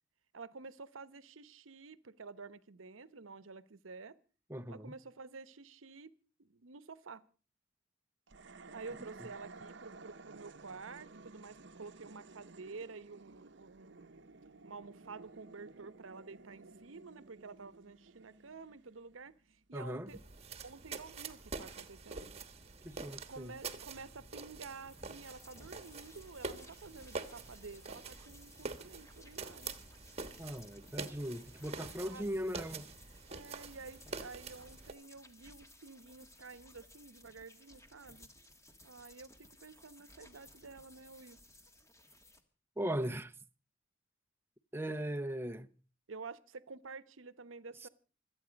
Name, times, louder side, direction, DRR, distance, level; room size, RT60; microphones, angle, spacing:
voice 1, 0.3-4.1 4.7-6.1 6.4-7.2 8.7-14.1 14.6-20.2 20.6-22.3 23.3-29.7 32.1-32.3 33.3-38.3 38.8-41.4 46.1-47.9, right 4 dB, 85° right, 0.9 m, -50 dB
voice 2, 4.5-4.9 19.7-20.1 22.8-23.6 30.4-32.9 42.8-43.3 44.7-45.7, equal, 10° right, 0.7 m, -39 dB
sound 1, 8.3-19.6, right 3 dB, 60° right, 0.8 m, -55 dB
sound 2, 20.1-34.9, right 4 dB, 30° right, 1.2 m, -46 dB
sound 3, 24.7-42.4, left 1 dB, 15° left, 1.5 m, -60 dB
26.0 x 8.8 x 5.1 m
head